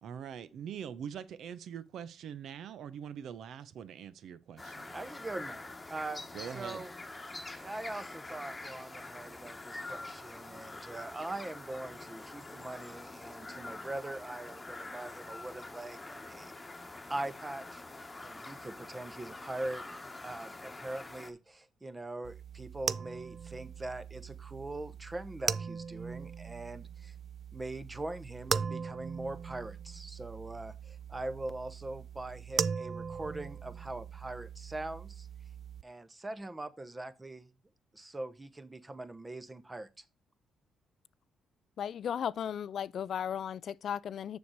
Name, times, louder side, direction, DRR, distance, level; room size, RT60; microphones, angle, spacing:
voice 1, 0.0-4.9 6.3-6.8, right 8 dB, 70° right, 0.8 m, -43 dB
sound 1, 4.6-21.3, left 2 dB, 15° left, 1.3 m, -46 dB
voice 2, 4.9-6.3 6.5-6.9 7.6-16.6 17.1-19.8 20.2-27.1 27.5-35.3 35.8-37.5 37.9-40.0, right 2 dB, 20° right, 0.8 m, -42 dB
sound 2, 22.2-35.8, right 6 dB, 50° right, 0.4 m, -39 dB
voice 3, 41.8-44.4, left 9 dB, 60° left, 0.4 m, -35 dB
7.1 x 6.4 x 4.7 m
cardioid pair, 90°, 0 cm